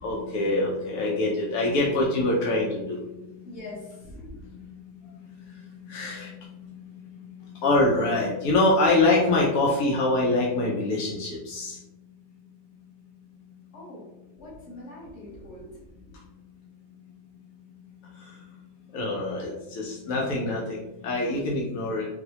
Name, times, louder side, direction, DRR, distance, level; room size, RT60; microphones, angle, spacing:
voice 1, 0.0-3.1 4.2-4.3 5.8-6.3 7.6-11.8 18.9-22.1, left 2 dB, 85° left, -3 dB, 1.1 m, -24 dB
voice 2, 3.4-4.1 13.7-14.0 14.4-15.7, left 2 dB, 55° left, -5 dB, 1.4 m, -42 dB
4.0 x 2.1 x 2.8 m, 0.95 s
omnidirectional pair, 1.5 m